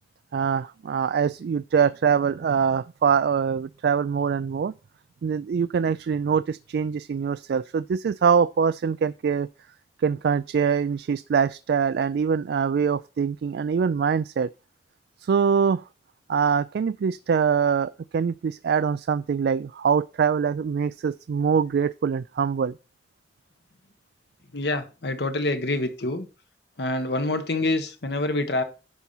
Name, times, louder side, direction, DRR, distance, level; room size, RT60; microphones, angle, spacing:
voice 1, 0.3-4.7 5.2-9.5 10.0-14.5 15.2-15.8 16.3-22.8, right 6 dB, 65° right, 0.3 m, -23 dB
voice 2, 24.5-26.3 26.8-28.6, left 2 dB, 65° left, 1.3 m, -26 dB
10.5 x 4.3 x 5.5 m
head